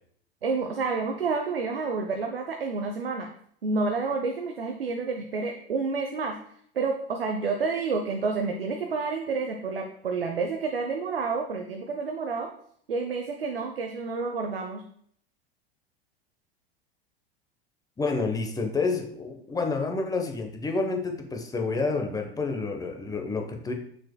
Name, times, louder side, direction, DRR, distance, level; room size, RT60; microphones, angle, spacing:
voice 1, 0.4-3.3 3.6-6.4 6.7-12.5 12.9-14.8, right 4 dB, 80° right, 3 dB, 0.6 m, -29 dB
voice 2, 18.0-23.7, left 3 dB, 15° left, 3 dB, 0.9 m, -29 dB
6.9 x 6.2 x 2.2 m, 0.64 s
figure-of-eight pair, 80°, 29 cm